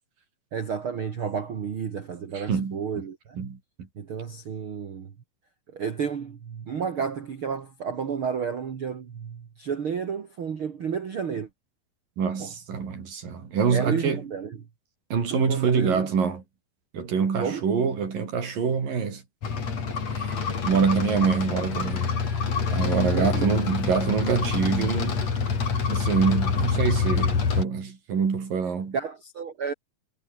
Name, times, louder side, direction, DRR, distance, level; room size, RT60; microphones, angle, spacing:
voice 1, 0.5-3.4 4.0-5.1 5.7-11.5 12.4-12.5 13.7-14.6 15.3-16.1 17.4-17.7 23.1-23.6 28.9-29.7, right 6 dB, 45° right, 2.2 m, -31 dB
voice 2, 2.3-2.8 3.4-3.6 12.2-14.2 15.1-16.4 16.9-19.2 20.1-20.4 20.7-22.1 22.7-25.2 25.9-29.0, right 6 dB, 65° right, 5.8 m, -25 dB
sound 1, 19.4-27.6, left 5 dB, 45° left, 4.7 m, -26 dB
omnidirectional pair, 4.3 m